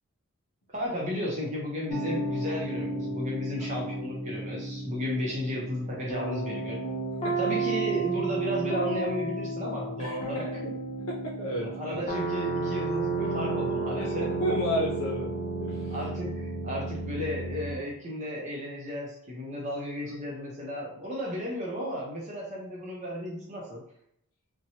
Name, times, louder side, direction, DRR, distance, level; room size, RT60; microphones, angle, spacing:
voice 1, 0.7-6.8 7.4-10.5 11.6-14.3 15.9-23.8, left 1 dB, 35° right, -3 dB, 0.6 m, -34 dB
sound 1, 1.9-17.8, right 3 dB, 25° left, 0.5 m, -32 dB
voice 2, 10.0-12.0 14.0-15.3 15.6-15.9, equal, 85° left, -3 dB, 0.6 m, -32 dB
2.7 x 2.1 x 2.8 m, 0.73 s
head